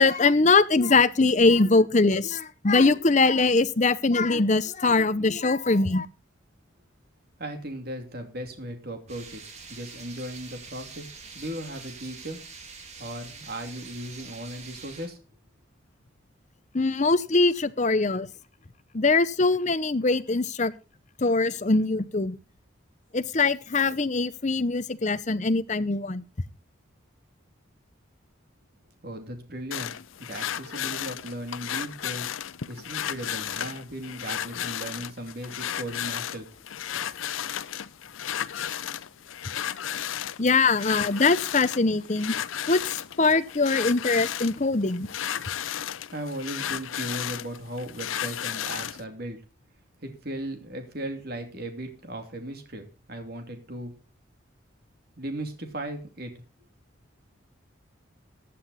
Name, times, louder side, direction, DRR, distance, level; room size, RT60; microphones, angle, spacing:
voice 1, 0.0-6.1 16.7-18.3 18.9-20.7 21.2-22.4 23.1-26.2 40.4-42.3 42.7-45.1, left 3 dB, 35° left, 13 dB, 0.7 m, -22 dB
voice 2, 7.4-12.4 13.0-15.2 29.0-29.9 30.2-32.3 32.7-36.5 46.1-49.4 50.0-53.9 55.2-56.3, right 1 dB, 50° right, 5 dB, 2.7 m, -37 dB
sound 1, 9.1-15.1, right 5 dB, 35° right, 2.3 m, -45 dB
sound 2, 29.7-49.0, left 10 dB, 80° left, 0.5 m, -34 dB
15.5 x 10.0 x 4.1 m, 0.33 s
head